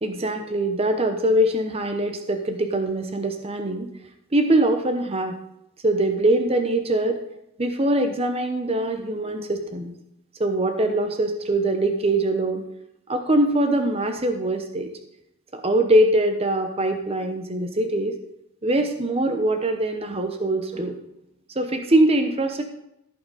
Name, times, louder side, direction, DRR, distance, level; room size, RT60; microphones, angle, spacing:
voice 1, 0.0-3.9 4.3-5.4 5.8-7.2 7.6-9.9 10.4-12.6 13.1-14.9 15.5-18.2 18.6-21.0 21.6-22.6, right 1 dB, 25° right, 6 dB, 0.8 m, -22 dB
14.5 x 5.7 x 4.1 m, 0.81 s
head